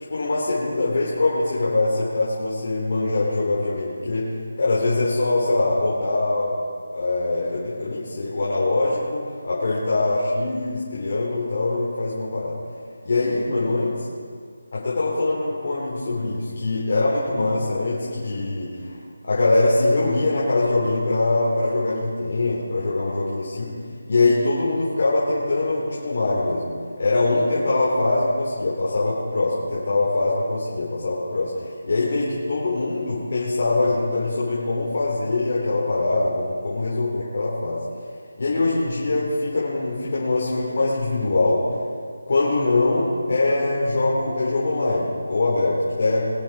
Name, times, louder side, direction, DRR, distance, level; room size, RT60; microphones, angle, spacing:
voice 1, 0.1-4.3 4.6-6.6 6.9-12.6 13.0-14.1 14.7-19.0 19.2-23.7 24.1-37.8 38.4-41.6 42.3-46.2, left 2 dB, 50° left, -7 dB, 3.6 m, -23 dB
23.0 x 7.8 x 5.0 m, 2.1 s
figure-of-eight pair, 170°, 0 cm